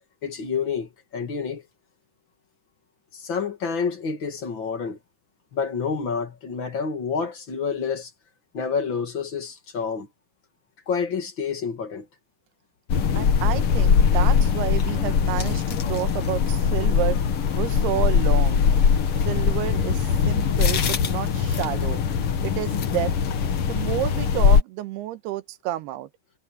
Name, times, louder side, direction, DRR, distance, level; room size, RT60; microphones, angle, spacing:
voice 1, 0.2-1.6 3.1-5.0 5.5-8.1 8.5-10.1 10.9-12.1, left 5 dB, 40° left, 2.1 m, -28 dB
sound 1, 12.9-24.6, left 6 dB, 70° left, 1.3 m, -21 dB
voice 2, 13.2-17.2 17.6-18.7 19.3-22.0 22.4-23.1 23.7-26.1, right 13 dB, 80° right, 2.9 m, -30 dB
omnidirectional pair, 4.7 m